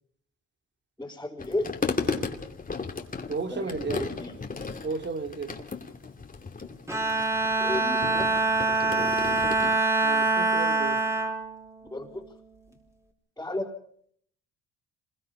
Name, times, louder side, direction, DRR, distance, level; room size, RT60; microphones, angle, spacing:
voice 1, 1.0-1.7 3.5-4.4 7.6-8.5 11.9-12.3 13.4-13.7, left 2 dB, 10° left, -7 dB, 4.3 m, -34 dB
sound 1, 1.4-9.8, left 4 dB, 30° left, 2.6 m, -35 dB
voice 2, 2.0-2.4 3.3-4.1 4.8-5.6 8.8-9.1 10.0-11.0, right 4 dB, 35° right, 6 dB, 2.8 m, -34 dB
Bowed string instrument, 6.9-12.4, right 3 dB, 10° right, 4.5 m, -25 dB
27.0 x 21.5 x 5.4 m, 0.63 s
cardioid pair, 90°, 30 cm